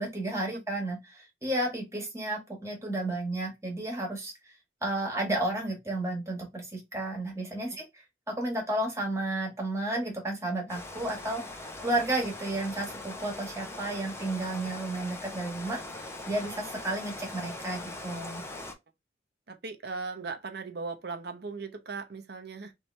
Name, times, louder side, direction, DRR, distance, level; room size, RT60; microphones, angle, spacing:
voice 1, 0.0-4.3 4.8-11.4 11.8-15.8 16.3-18.5, right 1 dB, 15° right, 1.4 m, -32 dB
Rain, 10.7-18.7, left 2 dB, 15° left, 0.6 m, -41 dB
voice 2, 19.5-22.7, right 4 dB, 55° right, 0.8 m, -38 dB
3.3 x 2.9 x 3.2 m
head